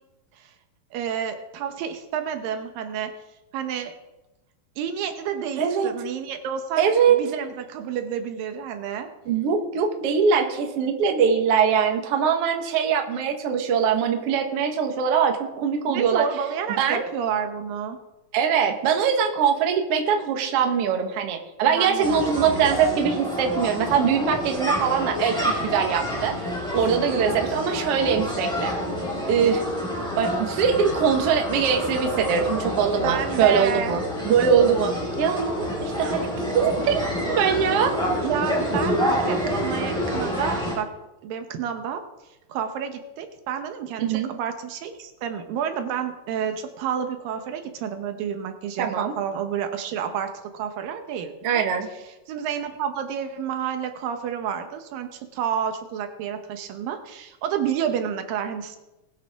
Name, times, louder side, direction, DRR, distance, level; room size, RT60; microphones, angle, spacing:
voice 1, 0.9-3.1 3.5-3.9 4.8-9.1 15.9-18.0 21.7-23.0 33.0-34.0 38.2-40.9 41.2-42.0 42.5-51.3 52.3-58.8, right 8 dB, 85° right, 7 dB, 2.7 m, -30 dB
voice 2, 5.6-5.9 6.8-7.2 9.2-16.2 16.7-17.1 18.3-28.7 29.3-29.6 30.2-37.9 44.0-44.3 48.8-49.1 51.4-51.9, right 7 dB, 60° right, 4 dB, 1.8 m, -22 dB
sound 1, 22.0-40.7, equal, ahead, 3.9 m, -28 dB
20.0 x 8.4 x 3.6 m, 1.0 s
omnidirectional pair, 4.0 m